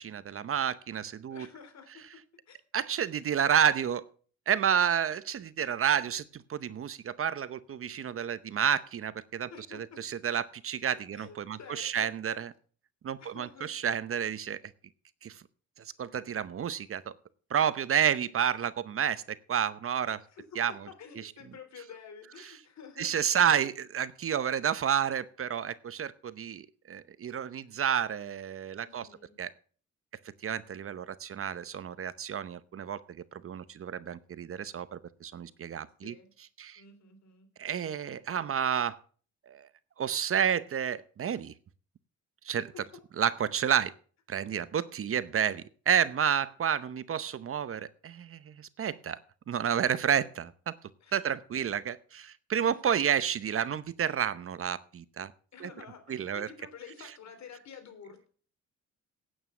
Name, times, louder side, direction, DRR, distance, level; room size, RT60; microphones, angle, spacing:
voice 1, 0.0-1.5 2.7-4.0 4.5-12.5 13.0-14.6 15.2-15.4 16.0-17.1 17.5-19.2 19.5-20.2 20.6-20.7 21.2-21.3 23.0-29.1 29.4-29.5 30.4-33.0 33.3-36.1 36.6-36.8 37.6-39.0 39.5-39.7 40.0-41.5 42.4-42.6 43.2-43.9 44.3-49.2 49.5-50.7 51.1-55.3 55.6-55.7 56.1-56.5, right 8 dB, 45° right, 16 dB, 0.8 m, -30 dB
voice 2, 1.3-1.9 2.5-2.6 9.5-10.0 11.1-12.1 13.2-13.7 20.3-20.4 20.7-23.1 28.8-29.4 36.0-36.3 36.8-37.5 51.0-51.1 55.5-58.3, left 6 dB, 65° left, 7 dB, 3.5 m, -49 dB
9.2 x 8.8 x 7.6 m, 0.43 s
cardioid pair, 90°, 30 cm